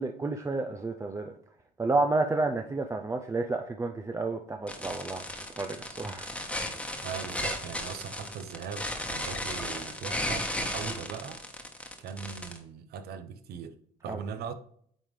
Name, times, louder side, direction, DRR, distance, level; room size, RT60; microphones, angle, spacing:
voice 1, 0.0-1.3 1.8-5.2 5.6-6.3 14.1-14.2, right 3 dB, 15° right, 0.5 m, -30 dB
sound 1, 4.7-12.6, left 1 dB, 5° left, 1.2 m, -35 dB
voice 2, 7.0-11.4 12.0-14.5, right 7 dB, 70° right, 0.7 m, -40 dB
8.9 x 3.6 x 3.2 m
cardioid pair, 110°, 17 cm